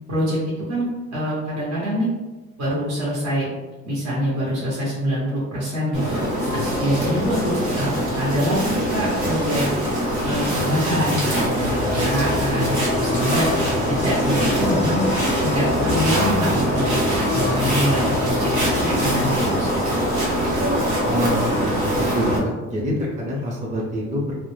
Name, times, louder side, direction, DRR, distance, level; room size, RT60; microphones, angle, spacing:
voice 1, 0.1-2.1 2.6-3.5 3.8-6.2 6.5-9.6 10.2-13.5 13.9-15.0 15.4-20.0, equal, 60° right, -8 dB, 0.9 m, -25 dB
sound 1, 5.9-22.4, equal, 85° right, 1.3 m, -23 dB
sound 2, 11.6-19.6, left 4 dB, 25° left, 0.4 m, -29 dB
voice 2, 21.0-24.3, equal, 25° right, -4 dB, 0.6 m, -27 dB
2.1 x 2.0 x 3.1 m, 1.2 s
cardioid pair, 90°, 30 cm